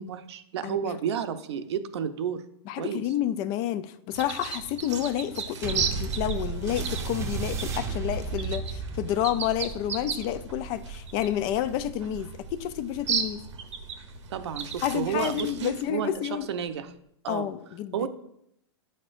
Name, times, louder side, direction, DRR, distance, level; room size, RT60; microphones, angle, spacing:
voice 1, 0.0-2.4 2.8-3.0 14.3-16.9 17.2-17.5 17.9-18.1, right 8 dB, 70° right, 0.7 m, -31 dB
voice 2, 2.7-13.4 14.8-16.5 17.3-18.1, left 11 dB, 35° left, 0.4 m, -30 dB
sound 1, 4.1-15.8, right 6 dB, 85° right, 1.1 m, -36 dB
sound 2, 5.6-14.4 15.2-15.3, right 4 dB, 20° right, 0.7 m, -35 dB
9.6 x 6.5 x 2.5 m
hypercardioid pair, 140°, 15 cm